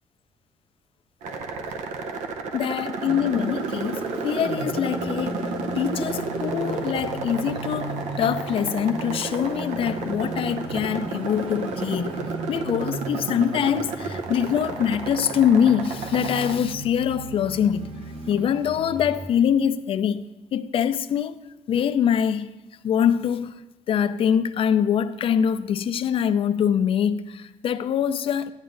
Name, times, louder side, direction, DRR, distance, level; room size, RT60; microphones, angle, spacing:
sound 1, 1.2-16.6, right 4 dB, 90° right, 0.7 m, -32 dB
voice 1, 2.5-5.4 5.8-12.2 12.5-17.9 18.3-20.2 20.5-21.4 21.7-22.5 22.8-23.5 23.9-28.5, left 8 dB, 50° left, 0.4 m, -24 dB
sound 2, 3.1-19.3, right 2 dB, 50° right, 0.9 m, -36 dB
11.0 x 9.4 x 2.6 m
cardioid pair, 130°, 12 cm